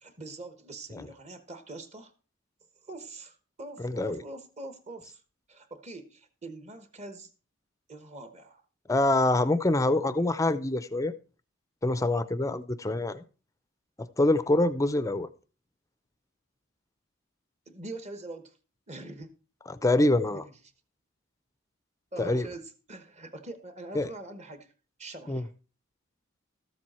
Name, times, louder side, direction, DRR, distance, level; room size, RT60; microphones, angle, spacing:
voice 1, 0.0-2.1 2.9-5.2 5.5-7.3 7.9-8.6 17.7-18.5 18.9-19.3 20.3-20.5 22.1-24.7 25.0-25.5, right 2 dB, 30° right, 1.2 m, -43 dB
voice 2, 3.8-4.2 8.9-11.1 11.8-13.2 14.2-15.3 19.7-20.4 22.2-22.5 23.9-24.1 25.3-25.4, left 2 dB, 15° left, 0.5 m, -25 dB
13.5 x 7.6 x 4.3 m
head